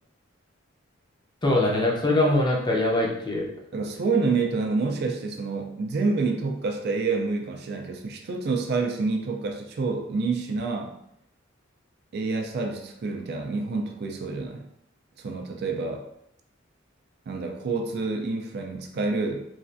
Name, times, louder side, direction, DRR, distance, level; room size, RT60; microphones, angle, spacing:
voice 1, 1.4-3.5, left 1 dB, 25° left, -2 dB, 0.6 m, -22 dB
voice 2, 3.7-10.9 12.1-14.7 15.2-16.0 17.3-19.4, right 4 dB, 55° right, 3 dB, 0.4 m, -28 dB
3.1 x 2.4 x 2.5 m, 0.76 s
head